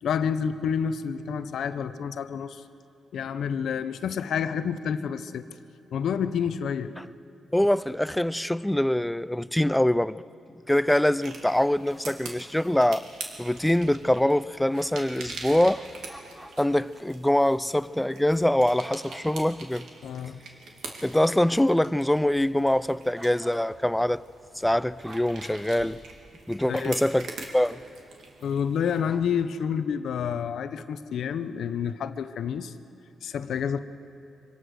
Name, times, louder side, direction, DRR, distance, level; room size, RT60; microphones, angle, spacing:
voice 1, 0.0-2.6 3.1-5.5 5.9-6.9 20.0-20.4 26.7-27.0 28.4-32.7 33.2-33.8, left 7 dB, 75° left, 0.8 m, -29 dB
voice 2, 7.5-10.2 10.7-13.1 13.4-15.8 16.6-19.9 21.0-24.2 24.6-26.0 26.5-27.3 27.5-27.8, left 1 dB, 5° left, 0.4 m, -24 dB
sound 1, 11.2-29.0, right 3 dB, 80° right, 2.6 m, -44 dB
sound 2, 14.7-21.8 22.3-22.4 23.2-25.4 26.5-26.7 27.3-27.4 27.8-28.0 28.2-28.5 28.8-29.5, right 1 dB, 15° right, 4.2 m, -50 dB
25.0 x 17.5 x 6.5 m
cardioid pair, 90°, 0 cm